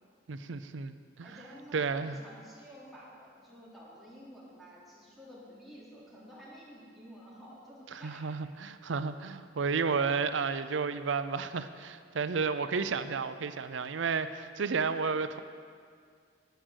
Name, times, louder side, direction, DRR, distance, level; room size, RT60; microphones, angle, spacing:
voice 1, 0.3-1.4 1.7-2.2 7.9-15.4, right 5 dB, 75° right, 11 dB, 0.6 m, -32 dB
voice 2, 1.2-8.3, equal, ahead, -8 dB, 3.0 m, -51 dB
10.0 x 9.4 x 6.4 m, 2.2 s
head